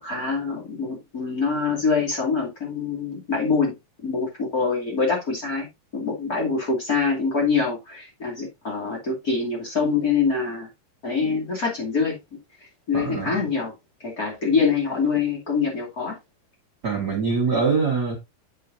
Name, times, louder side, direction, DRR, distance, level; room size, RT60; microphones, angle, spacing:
voice 1, 0.0-3.7 4.0-5.7 5.9-10.7 11.0-12.2 12.9-13.7 14.0-16.2, left 5 dB, 25° left, 2.6 m, -24 dB
voice 2, 12.9-13.4 16.8-18.1, right 4 dB, 70° right, 0.9 m, -23 dB
7.7 x 7.5 x 2.6 m
omnidirectional pair, 4.2 m